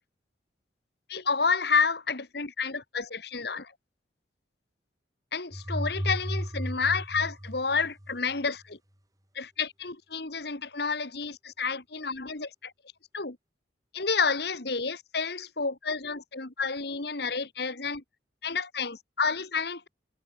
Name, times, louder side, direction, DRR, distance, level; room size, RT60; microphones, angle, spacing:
voice 1, 1.1-3.7 5.3-8.8 9.4-12.7 13.1-13.4 13.9-18.0 18.4-19.9, left 5 dB, 55° left, 1.7 m, -30 dB
sound 1, 5.5-8.4, equal, 20° right, 6.3 m, -34 dB
head